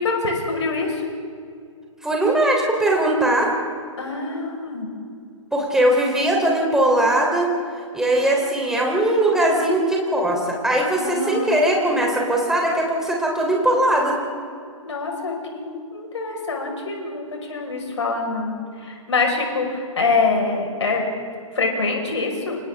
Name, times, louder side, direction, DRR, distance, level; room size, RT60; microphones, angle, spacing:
voice 1, 0.0-1.0 4.0-4.9 11.0-11.5 14.9-18.5 18.8-21.0 21.6-22.6, left 3 dB, 55° left, 1 dB, 5.3 m, -25 dB
voice 2, 2.0-3.5 5.5-7.5 7.9-14.2, right 1 dB, 5° right, -1 dB, 3.7 m, -20 dB
30.0 x 26.0 x 3.7 m, 2.3 s
figure-of-eight pair, 125°, 17 cm